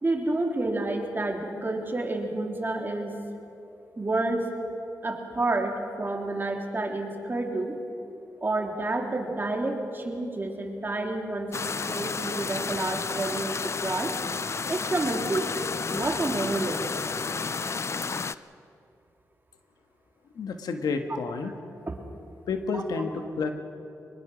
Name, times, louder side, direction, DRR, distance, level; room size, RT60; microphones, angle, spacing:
voice 1, 0.0-3.1 4.0-4.5 5.0-7.8 8.4-14.1 14.7-15.6 15.9-16.8 21.9-22.0 22.7-22.8, right 2 dB, 30° right, 2 dB, 3.4 m, -29 dB
sound 1, 11.5-18.3, left 5 dB, 45° left, 0.6 m, -31 dB
voice 2, 20.3-21.5 22.5-23.5, left 4 dB, 85° left, 6 dB, 1.6 m, -30 dB
24.0 x 21.0 x 6.4 m, 2.7 s
cardioid pair, 70°, 7 cm